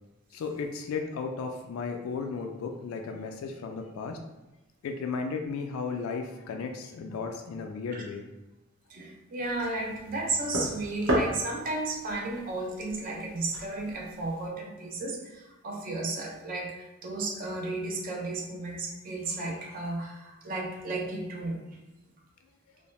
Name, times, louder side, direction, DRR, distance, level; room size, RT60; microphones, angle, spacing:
voice 1, 0.3-4.2 4.8-8.3, left 5 dB, 80° left, 5 dB, 0.3 m, -34 dB
voice 2, 8.9-21.8, right 2 dB, 40° right, -1 dB, 0.4 m, -34 dB
sound 1, 9.4-14.5, equal, 75° right, 0.8 m, -35 dB
2.6 x 2.1 x 3.0 m, 1.0 s
head